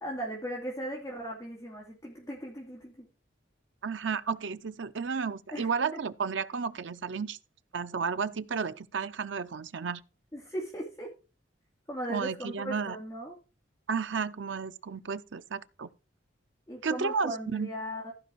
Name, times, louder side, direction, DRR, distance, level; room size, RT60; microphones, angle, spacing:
voice 1, 0.0-3.1 5.5-6.0 10.3-11.1 11.9-13.4 16.7-18.1, equal, 15° left, 2.6 m, -38 dB
voice 2, 3.8-7.4 7.7-10.0 12.1-13.0 13.9-15.9 16.8-17.7, right 5 dB, 85° right, 0.6 m, -32 dB
15.0 x 5.1 x 4.6 m
head